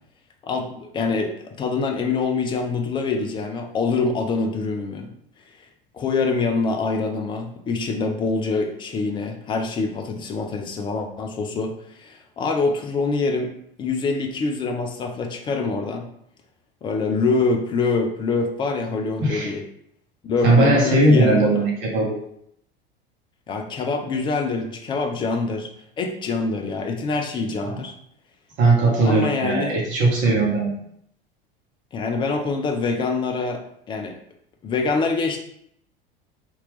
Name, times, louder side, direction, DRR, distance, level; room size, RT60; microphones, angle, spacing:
voice 1, 0.4-5.1 5.9-13.5 13.8-16.1 16.8-19.7 20.2-21.7 23.5-25.7 26.0-27.9 29.0-29.8 31.9-34.2 34.6-35.4, left 4 dB, 15° left, 4 dB, 0.3 m, -25 dB
voice 2, 20.4-22.1 28.6-30.7, right 2 dB, 40° right, -3 dB, 0.9 m, -18 dB
2.8 x 2.5 x 3.3 m, 0.70 s
figure-of-eight pair, 75°, 29 cm